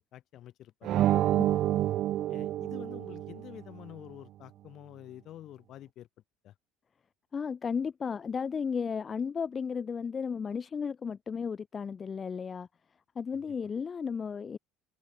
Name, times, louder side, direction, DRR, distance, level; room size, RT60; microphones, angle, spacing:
voice 1, 0.0-1.4 2.3-6.1 6.4-6.5 13.3-13.5, left 13 dB, 55° left, 2.9 m, -48 dB
sound 1, 0.8-3.5, right 13 dB, 55° right, 1.0 m, -28 dB
voice 2, 7.3-12.7 13.1-14.6, left 6 dB, 30° left, 1.1 m, -34 dB
supercardioid pair, 85°, 0 cm